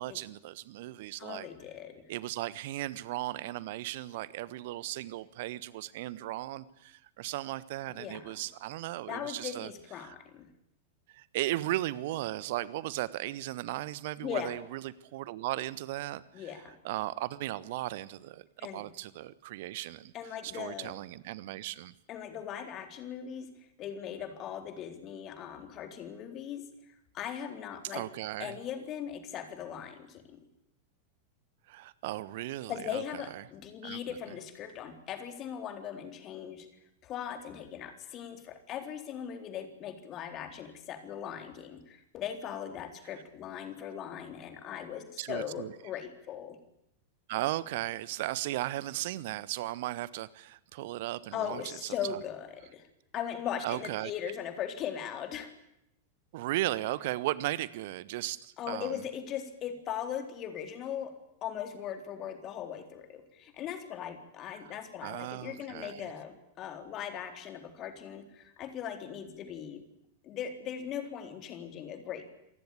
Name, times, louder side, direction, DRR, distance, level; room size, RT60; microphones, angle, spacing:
voice 1, 0.0-1.5 2.1-9.7 10.0-10.1 11.1-20.1 20.4-21.9 27.8-28.6 31.7-33.4 33.8-34.2 43.1-43.2 45.2-45.7 47.3-52.2 53.6-54.1 56.3-59.0 64.5-66.1, right 16 dB, 50° right, 18 dB, 1.3 m, -36 dB
voice 2, 1.2-2.0 7.9-8.2 9.1-10.5 14.2-14.6 16.3-16.8 18.6-18.8 20.1-20.9 22.1-23.5 23.8-26.6 27.1-28.0 28.4-30.4 32.7-36.7 37.0-46.6 51.3-52.9 53.1-55.5 58.6-61.1 61.4-69.8 70.2-72.3, left 9 dB, 35° left, 7 dB, 4.0 m, -39 dB
27.0 x 19.0 x 8.6 m, 0.80 s
figure-of-eight pair, 90°, 0 cm